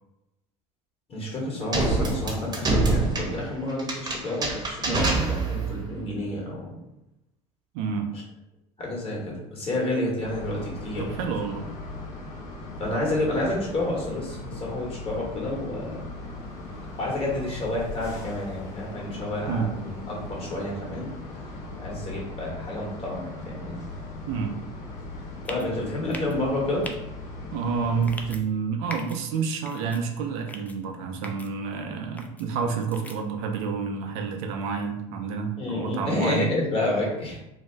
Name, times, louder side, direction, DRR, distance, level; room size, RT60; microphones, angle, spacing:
voice 1, 1.1-6.7 8.8-11.3 12.8-16.0 17.0-21.1 21.8-23.8 25.5-26.9 35.6-37.4, left 1 dB, 35° left, -3 dB, 1.3 m, -29 dB
sound 1, 1.7-5.8, right 3 dB, 25° right, 0.8 m, -26 dB
voice 2, 7.7-8.1 11.0-11.6 19.5-19.7 24.3-24.6 27.5-36.5, right 5 dB, 75° right, 3 dB, 0.5 m, -29 dB
sound 2, 10.2-28.3, left 2 dB, 60° left, 0.9 m, -39 dB
sound 3, 25.5-25.7 26.1-26.4 26.8-27.0 28.0-28.4 28.9-29.2 29.7-30.0 30.5-30.8 31.2-31.5 32.2-32.4 32.9-33.2, left 2 dB, 10° left, 0.3 m, -39 dB
2.7 x 2.2 x 3.3 m, 0.90 s
supercardioid pair, 95°, 16 cm